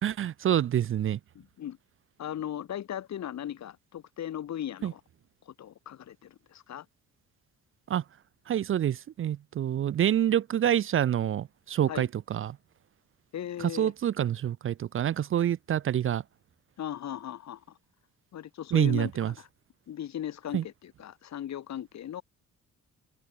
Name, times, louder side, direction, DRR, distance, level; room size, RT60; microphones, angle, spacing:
voice 1, 0.0-1.2 4.8-4.9 7.9-8.0 8.5-12.6 13.6-16.2 18.7-19.3 20.5-20.6, right 10 dB, 45° right, 0.5 m, -27 dB
voice 2, 1.3-1.8 2.2-5.0 5.4-6.9 11.9-12.1 13.3-13.9 16.8-17.8 18.3-19.5 19.9-22.2, left 10 dB, 65° left, 2.4 m, -38 dB
open air
cardioid pair, 90°, 30 cm